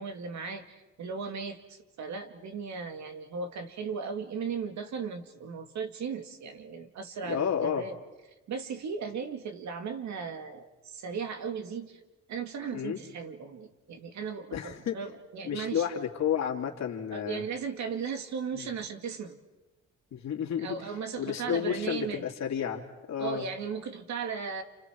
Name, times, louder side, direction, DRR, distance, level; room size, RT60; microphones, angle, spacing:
voice 1, 0.0-8.0 8.5-12.0 12.3-15.9 17.1-19.4 20.6-22.2 23.2-24.6, right 6 dB, 70° right, 6 dB, 2.3 m, -36 dB
voice 2, 7.3-7.8 12.7-13.0 14.5-15.0 15.4-17.4 18.5-18.7 20.1-20.8 21.2-23.5, left 8 dB, 65° left, 1 dB, 2.9 m, -31 dB
29.5 x 29.0 x 4.7 m, 1.1 s
cardioid pair, 90°, 30 cm